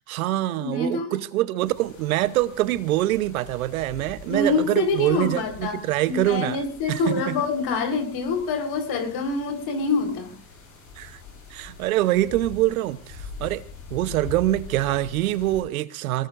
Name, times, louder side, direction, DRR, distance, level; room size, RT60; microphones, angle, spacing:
voice 1, 0.1-6.6 6.9-7.3 11.0-11.2 11.5-13.6 13.9-16.3, right 15 dB, 85° right, 0.9 m, -24 dB
voice 2, 0.6-1.2 4.2-5.8 6.1-10.3, left 4 dB, 65° left, 4.3 m, -26 dB
sound 1, 1.6-15.6, left 3 dB, 80° left, 6.6 m, -44 dB
25.0 x 19.0 x 2.6 m
hypercardioid pair, 65°, 41 cm